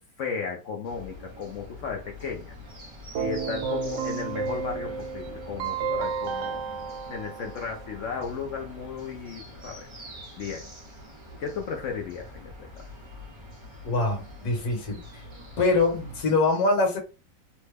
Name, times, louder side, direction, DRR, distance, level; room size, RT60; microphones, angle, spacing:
voice 1, 0.0-2.5 3.2-9.8 10.4-10.7 11.4-12.5, left 6 dB, 75° left, 0.7 m, -35 dB
sound 1, 0.8-16.2, left 1 dB, 30° right, 0.5 m, -45 dB
Keyboard (musical), 3.2-8.1, right 6 dB, 75° right, 1.1 m, -32 dB
voice 2, 13.8-15.2 15.6-17.0, left 3 dB, 60° left, 1.4 m, -24 dB
3.2 x 2.1 x 3.3 m
omnidirectional pair, 2.0 m